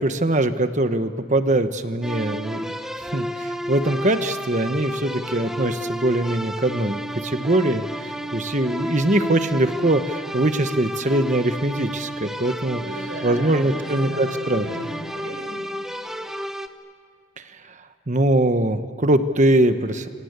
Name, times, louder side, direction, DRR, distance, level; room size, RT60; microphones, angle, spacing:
voice 1, 0.0-12.8 13.2-14.7 17.6-17.7 18.1-20.1, right 1 dB, 35° right, 9 dB, 1.2 m, -22 dB
sound 1, 2.0-16.7, equal, ahead, 0.9 m, -31 dB
voice 2, 12.7-15.7, right 1 dB, 55° right, -3 dB, 5.7 m, -36 dB
29.0 x 25.0 x 8.2 m, 2.2 s
head